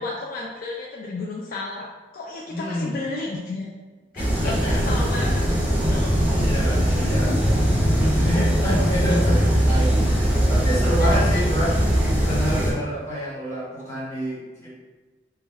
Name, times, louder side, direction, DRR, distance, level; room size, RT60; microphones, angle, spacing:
voice 1, 0.0-1.9 2.1-3.7 4.1-5.6 5.9-6.3 11.0-11.4, left 2 dB, 50° left, -3 dB, 0.3 m, -32 dB
voice 2, 2.5-2.9 4.2-4.8 6.3-7.3 7.8-11.8 12.2-14.7, equal, 15° left, -8 dB, 0.9 m, -28 dB
sound 1, 4.2-12.7, equal, 10° right, 0.5 m, -20 dB
2.2 x 2.2 x 3.2 m, 1.3 s
head